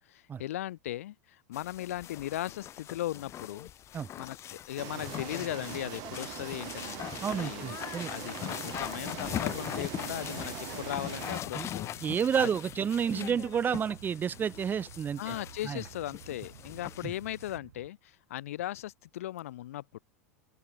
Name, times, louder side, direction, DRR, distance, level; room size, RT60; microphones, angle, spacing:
voice 1, 0.1-3.7 4.2-7.0 7.3-11.9 12.4-12.5 13.1-13.5 15.2-20.0, left 14 dB, 65° left, 0.8 m, -38 dB
sound 1, 1.5-17.6, left 12 dB, 35° left, 2.3 m, -41 dB
sound 2, 4.8-11.4, right 25 dB, 45° right, 2.9 m, -42 dB
voice 2, 7.2-8.1 11.5-11.7 12.0-15.4 15.6-15.8, right 7 dB, 25° right, 0.9 m, -30 dB
sound 3, 9.1-17.9, right 14 dB, 60° right, 5.6 m, -52 dB
open air
figure-of-eight pair, 85°, 8 cm